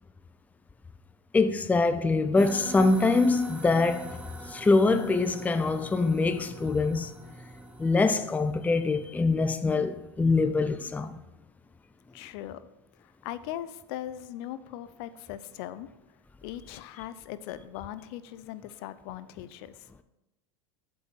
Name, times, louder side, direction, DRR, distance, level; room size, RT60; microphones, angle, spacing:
voice 1, 1.3-4.2 4.5-7.1 7.8-11.2, left 3 dB, 10° left, 0.5 m, -24 dB
sound 1, 2.4-10.0, right 1 dB, 10° right, 1.0 m, -43 dB
voice 2, 12.1-12.6 13.2-15.9 16.4-19.9, left 12 dB, 60° left, 0.6 m, -39 dB
7.8 x 5.4 x 5.8 m
hypercardioid pair, 95°, 15 cm